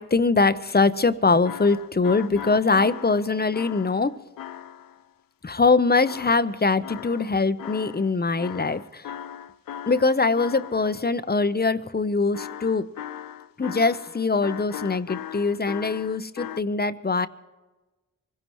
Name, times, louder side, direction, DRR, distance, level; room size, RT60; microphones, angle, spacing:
voice 1, 0.0-4.2 5.4-9.1 9.9-12.9 13.6-17.3, left 4 dB, 30° left, 0.8 m, -22 dB
sound 1, 1.3-5.0 6.0-8.1 8.4-11.1 12.3-16.6, left 10 dB, 85° left, 0.5 m, -38 dB
24.5 x 16.5 x 3.1 m
cardioid pair, 40°, 33 cm